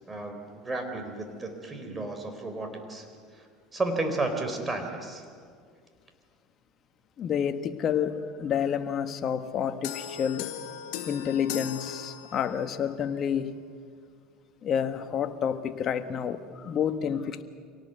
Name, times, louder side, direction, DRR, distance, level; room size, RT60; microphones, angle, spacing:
voice 1, 0.1-3.1 3.4-3.5 3.7-5.2, right 2 dB, 15° right, 5 dB, 4.1 m, -32 dB
voice 2, 7.2-10.5 11.1-13.6 14.6-17.4, left 8 dB, 40° left, 8 dB, 1.5 m, -29 dB
sound 1, 9.8-12.7, left 10 dB, 70° left, 2.2 m, -38 dB
25.5 x 18.0 x 8.1 m, 2.1 s
supercardioid pair, 105°, 0 cm